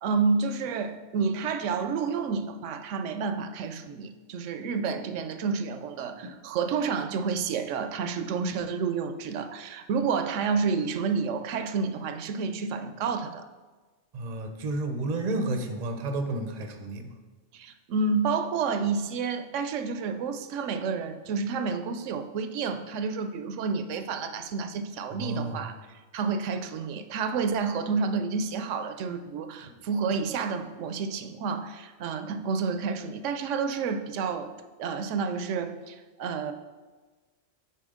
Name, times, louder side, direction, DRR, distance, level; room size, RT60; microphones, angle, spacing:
voice 1, 0.0-13.4 17.5-25.7 26.1-36.5, right 5 dB, 70° right, 8 dB, 0.9 m, -30 dB
voice 2, 14.1-17.1 25.1-25.7 29.6-29.7, right 2 dB, 45° right, 6 dB, 0.6 m, -31 dB
8.4 x 4.6 x 3.6 m, 1.3 s
omnidirectional pair, 1.4 m